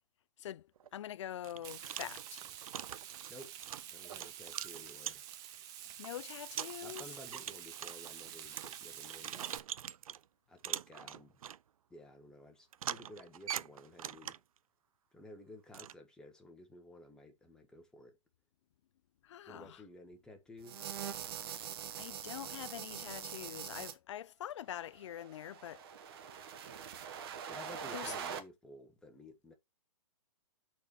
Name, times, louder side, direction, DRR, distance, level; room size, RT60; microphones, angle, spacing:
voice 1, 0.4-2.5 6.0-7.1 19.2-19.8 21.4-25.8 26.3-26.4 27.9-28.1, left 11 dB, 55° left, 0.4 m, -45 dB
sound 1, 0.8-0.9 1.4-5.5 6.0-6.1 6.5-10.2 10.6-11.6 12.7-14.6 15.7-15.9, right 10 dB, 75° right, 0.4 m, -43 dB
Frying (food), 1.6-9.6, right 11 dB, 20° right, 0.6 m, -48 dB
voice 2, 3.9-5.3 6.8-9.5 10.5-11.4 11.9-14.4 15.1-18.2 19.5-21.0 27.5-29.5, left 1 dB, 5° left, 1.2 m, -54 dB
sound 2, 20.6-23.9 25.1-28.4, right 8 dB, 40° right, 1.1 m, -43 dB
6.9 x 4.4 x 6.7 m
hypercardioid pair, 150°, 18 cm